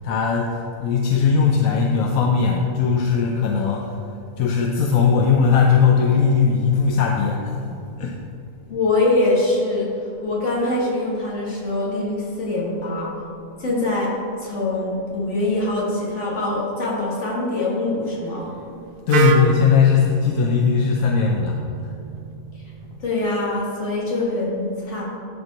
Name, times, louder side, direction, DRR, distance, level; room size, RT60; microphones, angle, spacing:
voice 1, 0.0-3.9 4.4-8.2 19.1-21.6, left 6 dB, 90° left, 1 dB, 1.1 m, -19 dB
voice 2, 8.7-13.1 13.6-18.5 23.0-25.0, left 2 dB, 60° left, -5 dB, 2.0 m, -23 dB
Wind instrument woodwind instrument, 19.1-23.0, right 3 dB, 55° right, 0.6 m, -27 dB
11.5 x 4.5 x 4.0 m, 2.8 s
omnidirectional pair, 1.4 m